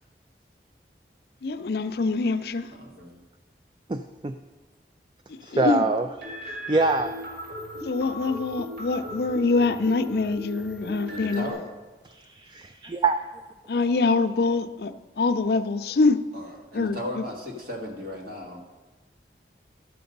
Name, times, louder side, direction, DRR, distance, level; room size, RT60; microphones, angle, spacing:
voice 1, 1.4-2.7 5.5-5.9 7.8-11.6 13.7-16.2 16.7-17.2, left 3 dB, 65° left, 0.5 m, -24 dB
voice 2, 2.8-3.2 11.1-11.6 16.3-18.6, left 1 dB, 55° right, 1.9 m, -36 dB
voice 3, 3.9-4.4 5.4-6.1 6.7-7.2 12.0-13.2, right 3 dB, 25° right, 0.3 m, -25 dB
sound 1, 6.2-11.5, equal, 90° right, 4.0 m, -37 dB
12.5 x 6.9 x 5.3 m
head